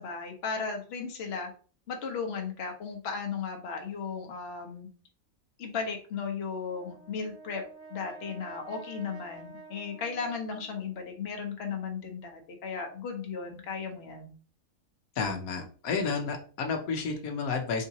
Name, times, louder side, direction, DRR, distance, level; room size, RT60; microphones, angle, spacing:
voice 1, 0.0-1.5 1.9-4.9 5.6-7.6 7.9-14.3, left 5 dB, 50° left, 3 dB, 1.0 m, -35 dB
Brass instrument, 6.6-11.1, right 4 dB, 20° right, 1.3 m, -49 dB
voice 2, 15.2-17.8, left 5 dB, 85° left, 4 dB, 1.2 m, -31 dB
4.1 x 3.6 x 2.8 m, 0.40 s
omnidirectional pair, 1.5 m